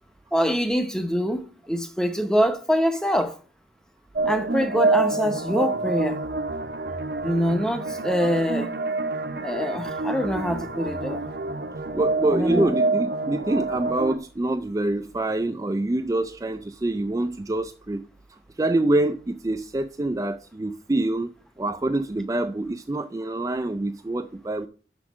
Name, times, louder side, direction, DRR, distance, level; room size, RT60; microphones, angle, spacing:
voice 1, 0.3-3.4 4.3-6.2 7.2-8.7 9.4-11.2 12.3-12.7, equal, 5° left, 0.7 m, -24 dB
sound 1, 4.2-14.2, right 3 dB, 60° right, 0.7 m, -27 dB
voice 2, 11.9-18.0 18.3-21.3 21.6-24.7, right 2 dB, 20° right, 0.3 m, -26 dB
6.2 x 6.1 x 5.9 m
head